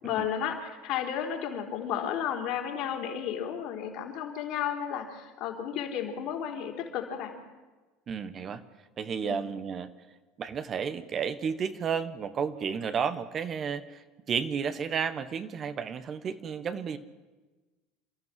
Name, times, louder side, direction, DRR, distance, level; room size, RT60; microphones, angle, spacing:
voice 1, 0.0-7.3 9.2-9.4, left 9 dB, 60° left, 2 dB, 4.2 m, -33 dB
voice 2, 8.1-8.6 9.0-9.9 10.4-17.0, right 6 dB, 40° right, 11 dB, 1.4 m, -32 dB
28.5 x 13.5 x 7.7 m, 1.3 s
hypercardioid pair, 75°, 0 cm